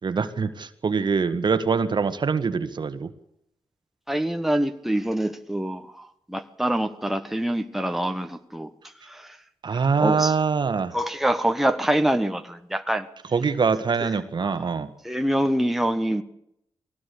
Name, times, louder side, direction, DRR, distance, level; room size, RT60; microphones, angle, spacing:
voice 1, 0.0-3.1 9.6-11.0 13.3-14.9, right 5 dB, 50° right, 11 dB, 1.6 m, -24 dB
voice 2, 4.1-8.7 9.1-9.3 9.7-10.3 10.9-13.1 14.4-14.7 15.0-16.2, right 1 dB, 5° right, 7 dB, 1.5 m, -25 dB
21.0 x 17.0 x 8.5 m, 0.78 s
cardioid pair, 65°, 10 cm